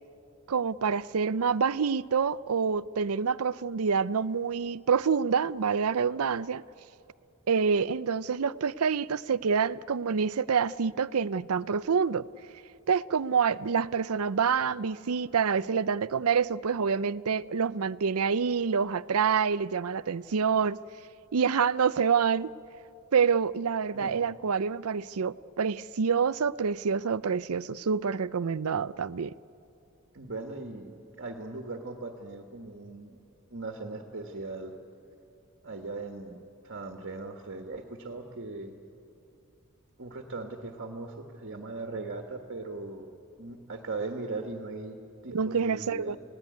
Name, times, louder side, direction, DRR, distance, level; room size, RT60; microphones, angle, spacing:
voice 1, 0.5-6.6 7.5-12.2 12.9-20.8 21.3-22.5 23.1-29.3 45.3-46.2, right 6 dB, 80° right, 0.6 m, -27 dB
voice 2, 30.1-33.2 33.5-34.7 35.6-38.8 40.0-43.1 43.4-46.2, right 3 dB, 55° right, 1.7 m, -39 dB
29.5 x 18.0 x 9.5 m
head